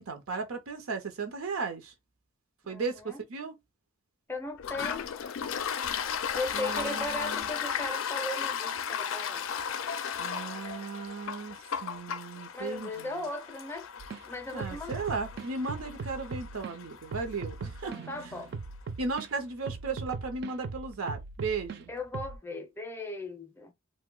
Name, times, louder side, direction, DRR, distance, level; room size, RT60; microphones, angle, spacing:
voice 1, 0.0-1.9 2.7-3.5 6.5-7.5 10.2-13.1 14.5-17.9 19.0-21.9, right 4 dB, 90° right, 0.6 m, -36 dB
voice 2, 2.6-3.2 4.3-5.1 6.3-9.4 12.5-13.9 14.3-15.0 17.6-18.5 21.9-23.7, left 2 dB, 10° left, 0.5 m, -37 dB
Toilet flush, 4.6-18.0, left 7 dB, 70° left, 0.4 m, -35 dB
sound 1, 14.0-14.2 14.6-16.8 17.1-19.3 19.7-21.8 22.1-22.4, right 4 dB, 50° right, 0.3 m, -39 dB
2.7 x 2.1 x 3.7 m
head